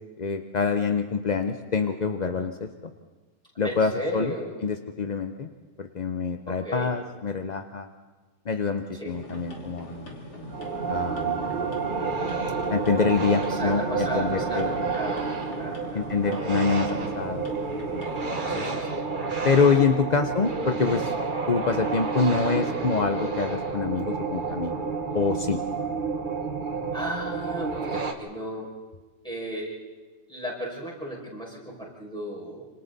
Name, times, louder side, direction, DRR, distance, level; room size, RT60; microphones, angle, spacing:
voice 1, 0.2-2.7 3.6-4.3 4.6-5.5 5.8-7.9 8.5-10.1 10.9-11.6 12.7-14.7 15.9-17.5 17.9-18.6 19.4-21.1 21.5-24.7 25.1-25.6, left 5 dB, 45° left, 7 dB, 0.5 m, -26 dB
voice 2, 3.6-4.6 6.5-6.9 8.9-9.1 13.5-15.3 15.5-16.3 18.5-19.0 20.1-20.3 22.6-22.9 26.9-28.7 29.2-29.7 30.3-32.7, equal, 5° left, -5 dB, 5.8 m, -35 dB
sound 1, 9.1-18.8, left 1 dB, 75° left, 3.5 m, -41 dB
sound 2, 10.5-28.1, right 4 dB, 30° right, 1.4 m, -30 dB
26.5 x 26.5 x 4.1 m, 1.3 s
omnidirectional pair, 1.8 m